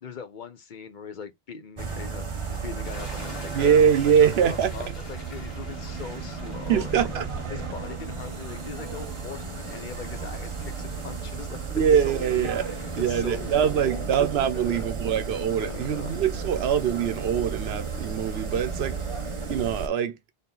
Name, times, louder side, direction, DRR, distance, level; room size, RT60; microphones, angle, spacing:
voice 1, 0.0-11.6 11.9-14.1 14.5-14.9 15.6-16.1, left 6 dB, 55° left, 0.7 m, -41 dB
sound 1, 1.8-19.9, right 5 dB, 35° right, 0.8 m, -34 dB
sound 2, 2.8-13.9, left 2 dB, 75° left, 2.1 m, -49 dB
voice 2, 3.5-4.7 6.7-7.3 11.7-12.7 13.0-19.0 19.5-20.2, right 8 dB, 80° right, 0.9 m, -23 dB
3.5 x 2.7 x 3.8 m
omnidirectional pair, 1.0 m